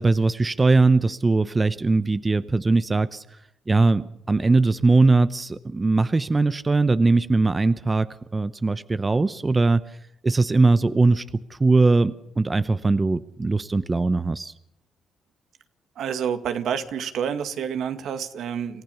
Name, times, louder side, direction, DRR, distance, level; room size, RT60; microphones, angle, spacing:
voice 1, 0.0-3.2 3.7-8.1 8.3-9.8 10.2-14.5, right 3 dB, 25° right, 14 dB, 0.8 m, -20 dB
voice 2, 16.0-18.8, right 8 dB, 75° right, 9 dB, 2.0 m, -28 dB
28.0 x 15.0 x 7.0 m, 0.76 s
cardioid pair, 90°, 0 cm